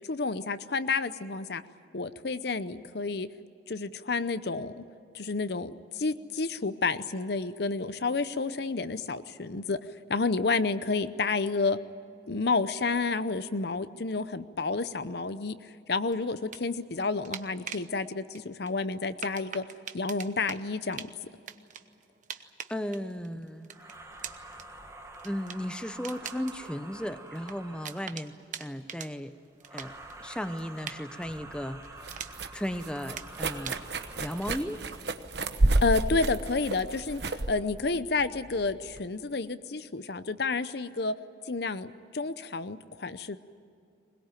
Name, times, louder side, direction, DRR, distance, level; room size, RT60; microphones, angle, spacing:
voice 1, 0.1-1.6 1.9-3.3 3.7-4.9 5.1-9.8 10.1-11.8 12.3-15.6 15.9-19.6 19.9-21.1 35.8-41.1 41.5-43.4, left 3 dB, 60° left, 13 dB, 0.7 m, -30 dB
sound 1, 16.1-17.9 18.4-32.6 33.0-35.3, right 8 dB, 40° right, 0.9 m, -44 dB
voice 2, 22.7-23.7 25.2-29.3 29.7-29.9 30.2-31.9 32.5-33.8 34.2-34.8, equal, 5° left, 10 dB, 0.7 m, -35 dB
sound 2, 23.7-28.3 29.6-35.1, right 2 dB, 15° right, 1.5 m, -48 dB
sound 3, 31.3-39.0, right 2 dB, 65° right, 1.1 m, -31 dB
21.5 x 21.0 x 9.1 m, 2.5 s
head